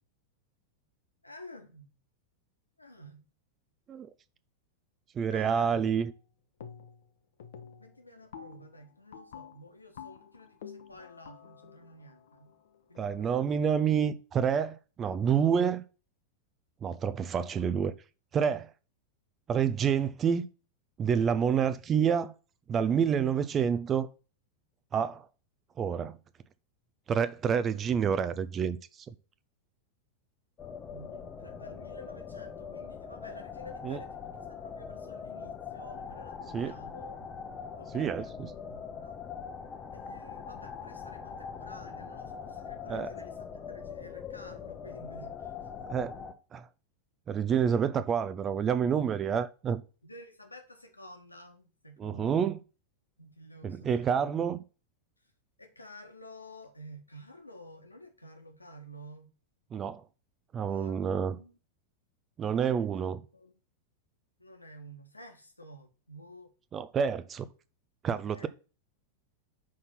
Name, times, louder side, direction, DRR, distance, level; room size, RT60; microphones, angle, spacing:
voice 1, 1.2-1.9 2.8-3.2 5.2-5.9 7.8-12.5 12.9-13.6 30.9-37.3 37.8-39.2 39.9-45.7 50.0-52.6 53.2-54.3 55.2-55.3 55.6-59.3 60.7-61.5 62.8-62.9 63.3-63.6 64.4-66.5 68.1-68.5, equal, 85° left, 1.4 m, -51 dB
voice 2, 5.2-6.1 13.0-15.8 16.8-17.9 18.3-18.7 19.5-20.5 21.0-22.3 22.7-24.1 24.9-25.3 25.8-26.2 27.1-28.8 33.8-34.0 36.5-36.7 37.9-38.2 42.9-43.1 45.9-46.1 46.5-46.7 47.3-49.8 52.0-52.6 53.6-54.6 59.7-60.0 60.5-61.4 62.4-63.2 66.7-67.5 68.0-68.5, right 7 dB, 25° right, 0.5 m, -28 dB
sound 1, 5.8-6.3 6.6-7.1 7.4-13.2, left 7 dB, 60° left, 0.8 m, -49 dB
sound 2, 30.6-46.3, left 6 dB, 25° left, 0.8 m, -42 dB
6.1 x 4.1 x 5.7 m
figure-of-eight pair, 90°, 0 cm